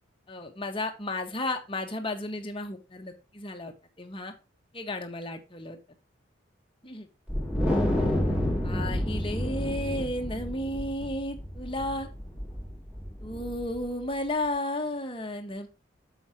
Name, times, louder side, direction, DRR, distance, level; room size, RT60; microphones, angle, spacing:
voice 1, 0.3-4.3 4.7-5.8 6.8-7.1 8.6-12.1 13.2-15.8, left 1 dB, 25° left, 4 dB, 1.7 m, -33 dB
Wind, 7.3-13.8, equal, 5° right, 3.7 m, -29 dB
8.6 x 7.3 x 3.0 m, 0.29 s
head